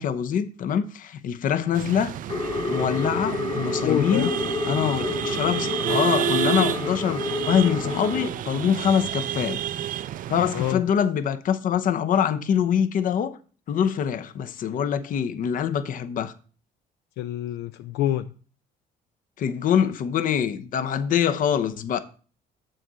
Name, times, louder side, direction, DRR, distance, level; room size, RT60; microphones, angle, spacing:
voice 1, 0.0-2.1 2.7-4.3 4.7-9.6 10.3-13.4 13.7-16.3 19.4-22.0, left 8 dB, 55° left, 0.8 m, -24 dB
sound 1, 1.7-10.7, right 11 dB, 55° right, 0.4 m, -30 dB
sound 2, 2.3-8.3, left 3 dB, 30° left, 1.2 m, -29 dB
voice 2, 3.8-4.3 10.5-10.8 17.2-18.3, left 12 dB, 80° left, 0.4 m, -26 dB
7.6 x 6.5 x 4.0 m
cardioid pair, 110°, 17 cm